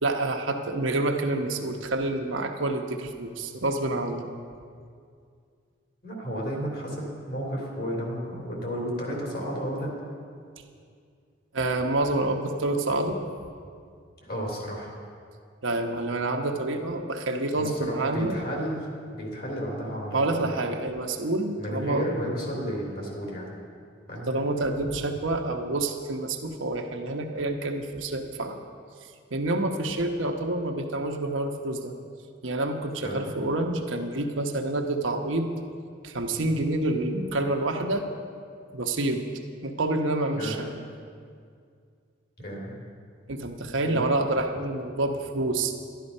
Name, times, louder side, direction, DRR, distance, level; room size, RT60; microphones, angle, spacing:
voice 1, 0.0-4.3 11.5-13.2 15.6-18.4 20.1-22.1 24.3-28.6 29.3-31.9 32.4-35.5 36.0-38.0 38.7-39.2 39.6-40.8 43.3-45.7, right 2 dB, 70° right, 3 dB, 1.0 m, -28 dB
voice 2, 6.0-9.9 14.2-14.9 17.6-20.6 21.6-23.5 24.1-24.4 33.0-33.4 40.3-40.6 42.4-42.8 43.8-44.0, equal, 50° left, -1 dB, 3.0 m, -33 dB
12.0 x 11.5 x 5.4 m, 2.2 s
head